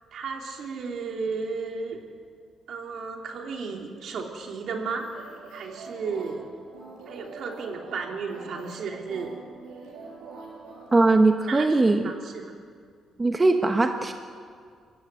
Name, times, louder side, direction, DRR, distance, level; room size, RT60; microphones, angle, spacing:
voice 1, 0.1-2.0 2.7-6.5 7.1-9.4 11.5-12.5, right 5 dB, 65° right, 2 dB, 3.6 m, -34 dB
sound 1, 5.0-11.1, right 3 dB, 90° right, 6.9 m, -44 dB
voice 2, 10.9-12.1 13.2-14.1, right 2 dB, 25° right, 6 dB, 1.2 m, -20 dB
23.0 x 15.0 x 9.6 m, 2.1 s
cardioid pair, 90°, 0 cm